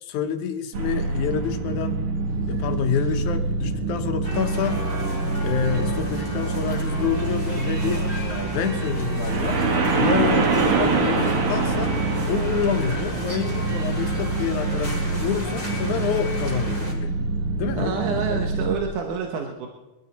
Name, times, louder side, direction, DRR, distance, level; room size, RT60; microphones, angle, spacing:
voice 1, 0.0-2.0 2.5-4.8 5.4-8.1 8.5-9.6 10.0-12.0 12.3-17.1 17.6-18.5, left 8 dB, 80° left, 7 dB, 2.5 m, -28 dB
sound 1, 0.7-18.8, right 3 dB, 50° right, 2.5 m, -25 dB
sound 2, 4.2-16.9, equal, 15° right, 3.5 m, -35 dB
voice 2, 17.6-19.7, right 6 dB, 85° right, 2 dB, 2.7 m, -28 dB
23.5 x 13.0 x 4.2 m, 1.0 s
omnidirectional pair, 3.5 m